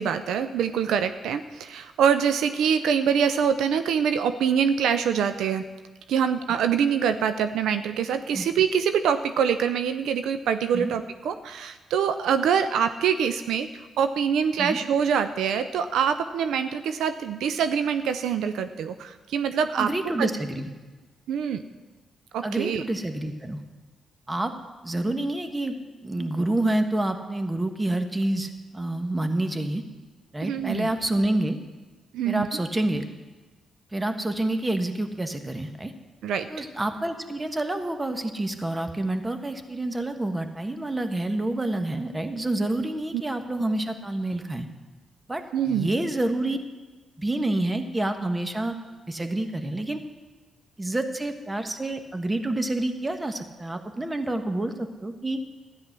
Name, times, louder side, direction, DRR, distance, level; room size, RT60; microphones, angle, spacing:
voice 1, 0.0-5.6 6.1-19.9 20.2-20.3 21.3-21.6 22.3-22.8 30.4-30.9 32.1-32.5 36.2-36.5 43.1-43.2 45.5-45.9, right 7 dB, 80° right, 10 dB, 0.5 m, -24 dB
voice 2, 19.7-20.7 22.4-23.6 24.3-24.5 24.8-25.8 26.0-29.8 30.3-31.6 32.2-33.0 33.9-35.9 36.5-44.7 45.3-46.6 47.2-48.8 49.1-50.0 50.8-55.4, right 1 dB, 20° right, 7 dB, 1.5 m, -28 dB
13.0 x 9.8 x 6.0 m, 1.3 s
supercardioid pair, 55°, 0 cm